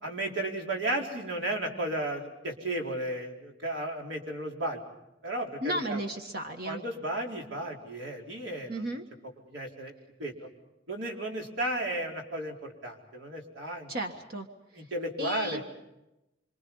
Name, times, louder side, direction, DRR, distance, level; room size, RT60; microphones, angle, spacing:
voice 1, 0.0-4.8 5.2-6.0 6.6-8.8 9.5-9.9 10.2-10.5 10.9-13.9 14.7-15.6, right 1 dB, 75° right, 0 dB, 4.5 m, -34 dB
voice 2, 5.6-6.8 8.7-9.0 13.9-14.5 15.2-15.6, right 1 dB, 55° right, 4 dB, 1.6 m, -34 dB
26.5 x 26.5 x 5.6 m, 0.93 s
head